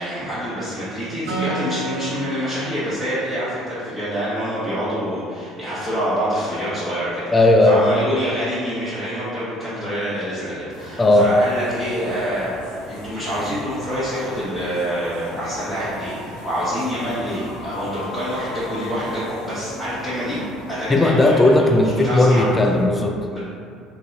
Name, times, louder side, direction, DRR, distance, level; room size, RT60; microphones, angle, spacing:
voice 1, 0.0-20.4 20.7-21.5 21.9-22.5 23.3-23.4, equal, 5° left, -13 dB, 1.1 m, -26 dB
Acoustic guitar, 1.3-4.7, right 2 dB, 70° right, 0.9 m, -32 dB
voice 2, 7.3-7.9 11.0-11.3 20.9-23.1, left 2 dB, 20° left, 2 dB, 0.4 m, -15 dB
sound 1, 10.7-22.8, left 2 dB, 80° left, 0.6 m, -38 dB
2.6 x 2.3 x 3.8 m, 2.3 s
figure-of-eight pair, 60°, 0 cm